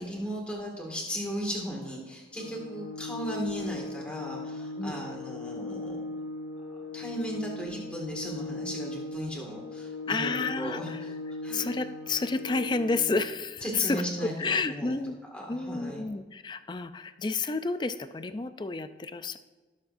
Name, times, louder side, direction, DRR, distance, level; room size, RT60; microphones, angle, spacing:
voice 1, 0.0-6.2 6.7-11.1 11.4-11.8 13.6-14.9 15.3-16.1, equal, 5° left, -2 dB, 2.0 m, -36 dB
Organ, 2.3-13.3, left 2 dB, 75° left, 1.4 m, -39 dB
voice 2, 10.1-11.0 11.5-15.2 15.5-19.4, left 3 dB, 25° left, 11 dB, 0.4 m, -30 dB
17.5 x 7.3 x 2.6 m, 1.3 s
head